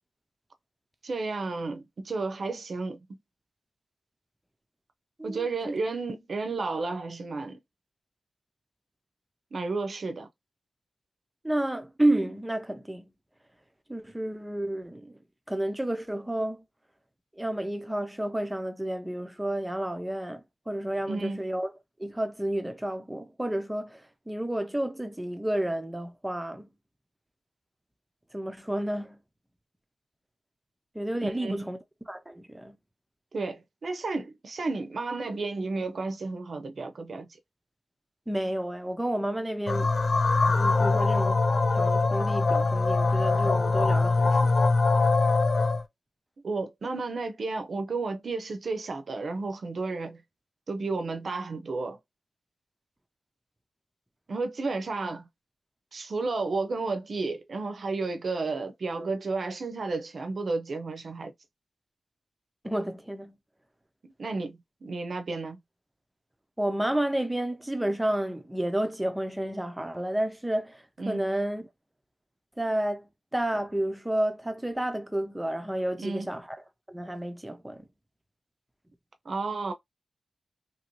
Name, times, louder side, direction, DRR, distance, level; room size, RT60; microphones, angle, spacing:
voice 1, 1.0-3.0 5.2-7.6 9.5-10.3 21.1-21.4 31.2-31.7 33.3-37.3 46.4-50.2 50.7-52.0 54.3-55.3 55.9-61.3 64.0-65.6 71.0-71.2 76.0-76.3 79.2-79.7, right 3 dB, 60° right, 0.6 m, -32 dB
voice 2, 5.2-5.8 11.4-13.0 13.9-15.2 15.5-16.6 17.4-20.4 20.7-21.7 22.0-26.7 28.3-29.2 30.9-31.8 32.1-32.8 38.3-39.9 40.5-41.5 41.7-44.6 62.6-63.3 66.6-71.7 72.6-76.6 76.9-77.9, right 1 dB, 10° right, 0.6 m, -31 dB
sound 1, 39.7-45.8, left 3 dB, 50° left, 0.4 m, -23 dB
2.9 x 2.7 x 3.0 m
wide cardioid pair, 110°, 0 cm